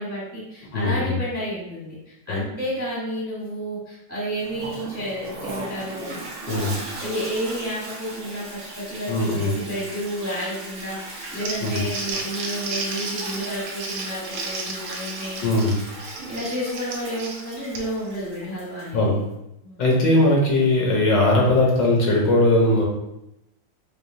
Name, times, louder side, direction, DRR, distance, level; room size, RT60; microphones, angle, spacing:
voice 1, 0.0-6.1 7.0-15.4 16.3-19.2 19.6-19.9, equal, 15° right, -7 dB, 0.6 m, -31 dB
voice 2, 0.7-1.2 2.3-2.4 6.5-6.8 9.1-9.5 11.6-11.8 15.4-15.7 18.9-19.2 19.8-22.8, left 2 dB, 65° left, -3 dB, 1.4 m, -19 dB
Toilet flush, 4.4-19.0, right 2 dB, 70° right, 0.7 m, -37 dB
Crumpling crinkling, 11.2-18.1, right 3 dB, 90° right, 1.6 m, -34 dB
4.9 x 2.6 x 2.6 m, 0.85 s
omnidirectional pair, 2.3 m